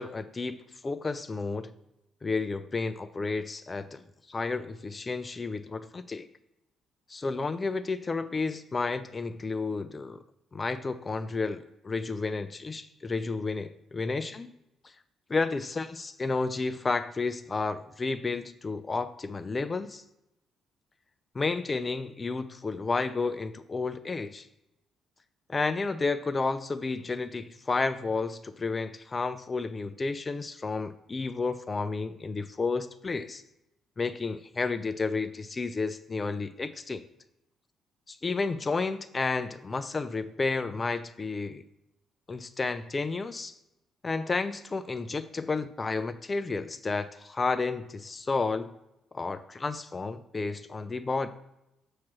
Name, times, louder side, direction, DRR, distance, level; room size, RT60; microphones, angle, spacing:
voice 1, 0.0-1.7 2.2-6.3 7.1-10.2 10.5-14.5 15.3-20.0 21.3-24.5 25.5-33.4 34.0-37.0 38.1-41.6 42.3-43.5 44.0-48.7 49.1-51.3, left 3 dB, 25° left, 12 dB, 0.4 m, -31 dB
7.4 x 3.1 x 5.9 m, 0.87 s
cardioid pair, 115°, 0 cm